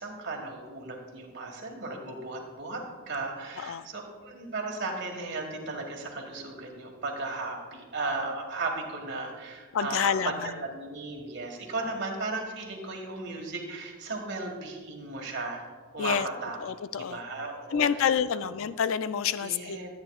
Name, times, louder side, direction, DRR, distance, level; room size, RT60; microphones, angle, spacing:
voice 1, 0.0-10.3 10.6-15.6 15.9-16.6 17.0-18.5 19.4-19.9, right 3 dB, 50° right, 0 dB, 1.7 m, -36 dB
voice 2, 9.7-10.5 16.0-16.3 16.6-17.2 17.7-19.8, left 7 dB, 65° left, 14 dB, 0.4 m, -28 dB
13.5 x 8.8 x 2.4 m, 1.4 s
head